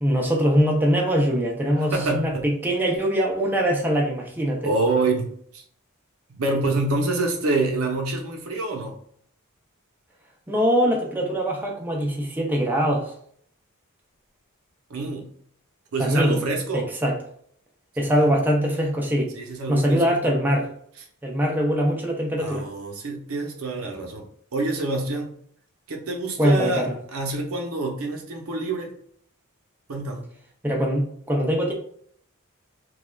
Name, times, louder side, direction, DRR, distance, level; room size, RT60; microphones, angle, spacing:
voice 1, 0.0-4.6 10.5-13.1 16.0-16.4 16.7-17.2 18.0-19.3 19.7-20.7 21.2-22.7 26.4-26.9 30.6-31.7, equal, 10° right, -1 dB, 0.4 m, -22 dB
voice 2, 1.8-2.4 4.6-5.6 6.3-9.0 14.9-15.3 15.9-16.9 18.1-18.3 19.3-20.3 22.4-24.3 24.5-25.3 25.9-28.9 29.9-30.2, right 3 dB, 70° right, 2 dB, 0.6 m, -26 dB
3.1 x 2.3 x 2.2 m, 0.62 s
head